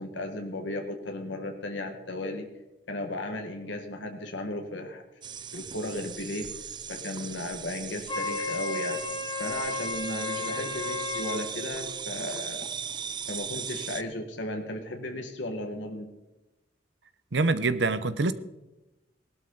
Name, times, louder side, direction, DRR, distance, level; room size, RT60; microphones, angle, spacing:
voice 1, 0.0-2.5 2.9-5.0 5.5-6.5 6.9-9.0 9.4-12.6 13.3-16.1, left 1 dB, 85° left, 1.7 m, -35 dB
sound 1, 5.2-14.0, right 7 dB, 25° right, 0.5 m, -38 dB
Wind instrument woodwind instrument, 8.1-11.4, left 3 dB, 25° left, 1.5 m, -33 dB
voice 2, 17.3-18.3, right 3 dB, 70° right, 0.9 m, -25 dB
18.0 x 12.5 x 4.0 m
head